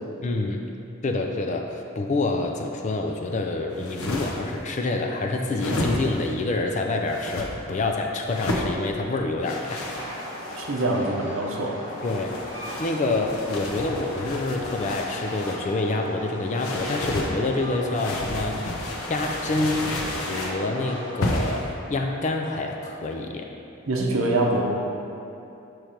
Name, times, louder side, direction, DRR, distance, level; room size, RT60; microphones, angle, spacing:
voice 1, 0.2-0.7 1.0-9.9 12.0-12.4 12.8-18.6 19.1-23.5, left 2 dB, 35° left, 3 dB, 0.3 m, -27 dB
sound 1, 3.7-4.6 5.4-6.3 7.1-7.5 8.3-8.7 9.4-10.9 11.9-15.7 16.5-17.3 17.9-20.6 21.2-21.7, left 1 dB, 85° left, 0.7 m, -32 dB
Train, 9.6-21.5, equal, 60° left, 1.1 m, -37 dB
voice 2, 10.5-11.8 23.9-24.6, right 2 dB, 70° right, -1 dB, 0.7 m, -24 dB
5.9 x 3.1 x 5.0 m, 2.8 s
head